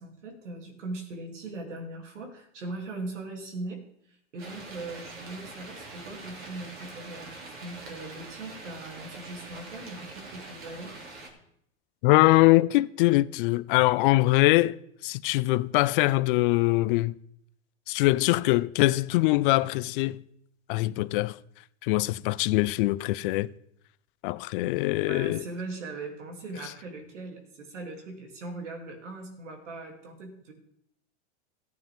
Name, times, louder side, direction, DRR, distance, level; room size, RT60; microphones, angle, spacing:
voice 1, 0.0-3.8 4.1-11.0 25.1-30.5, right 2 dB, 85° right, 3.0 m, -40 dB
sound 1, 4.4-11.3, right 2 dB, 35° right, 2.9 m, -44 dB
voice 2, 12.0-14.8 15.0-17.1 17.9-20.2 20.7-21.4 21.8-23.5 24.2-25.4, left 19 dB, 50° left, 0.4 m, -23 dB
15.0 x 9.3 x 3.6 m
hypercardioid pair, 120°, 35 cm